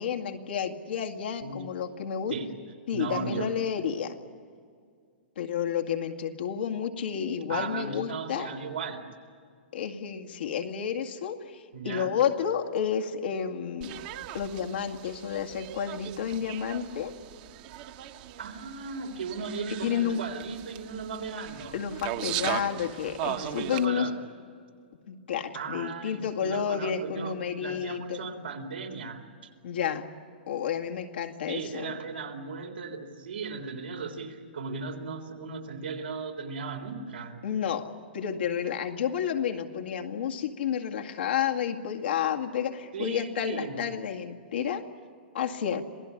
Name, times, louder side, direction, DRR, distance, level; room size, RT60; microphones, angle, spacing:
voice 1, 0.0-2.3 2.9-4.2 5.4-8.5 9.7-14.0 14.3-17.1 19.8-20.2 21.7-24.1 25.1-28.2 29.6-30.1 30.5-31.9 37.4-44.8 45.3-45.8, left 8 dB, 80° left, 3 dB, 2.1 m, -31 dB
voice 2, 2.9-3.5 7.5-9.0 11.7-12.1 18.4-21.8 23.3-24.2 25.5-29.5 31.5-37.4 42.9-43.8, right 4 dB, 85° right, 3 dB, 3.8 m, -36 dB
sound 1, 13.8-23.9, right 12 dB, 50° right, 1.4 m, -38 dB
27.0 x 17.5 x 9.9 m, 2.2 s
hypercardioid pair, 135°, 6 cm